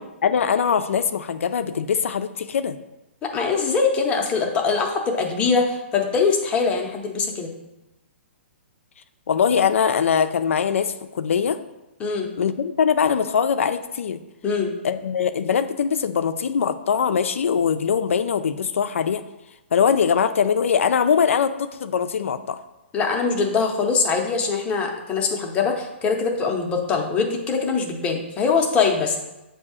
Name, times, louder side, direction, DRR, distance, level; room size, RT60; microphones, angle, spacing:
voice 1, 0.2-2.8 9.3-11.6 12.4-14.2 14.8-19.2 19.7-22.6, left 7 dB, 85° left, 9 dB, 0.4 m, -22 dB
voice 2, 3.2-7.5 12.0-12.3 14.4-14.7 22.9-29.2, left 5 dB, 15° left, 1 dB, 0.7 m, -22 dB
7.3 x 2.7 x 4.8 m, 0.96 s
hypercardioid pair, 155°, 7 cm